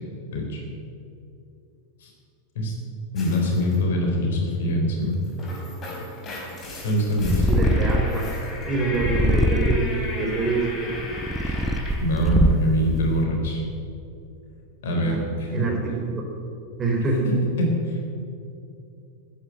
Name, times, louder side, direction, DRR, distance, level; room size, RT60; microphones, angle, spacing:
voice 1, 0.3-0.6 2.0-2.1 2.6-2.7 3.1-5.2 6.8-7.6 11.5-11.6 12.0-13.6 14.8-15.7 17.2-18.0, left 1 dB, 60° left, 1 dB, 3.8 m, -24 dB
sound 1, 3.2-3.8 5.1-12.1, left 2 dB, 30° left, 4.4 m, -37 dB
Purr, 7.2-8.3 8.9-10.0 10.7-12.8, equal, 5° right, 0.9 m, -22 dB
voice 2, 7.5-8.2 8.7-10.7 14.9-15.2 15.5-16.3 16.8-17.3, right 3 dB, 20° right, 0 dB, 3.9 m, -25 dB
13.5 x 9.9 x 9.6 m, 2.6 s
figure-of-eight pair, 90°, 0 cm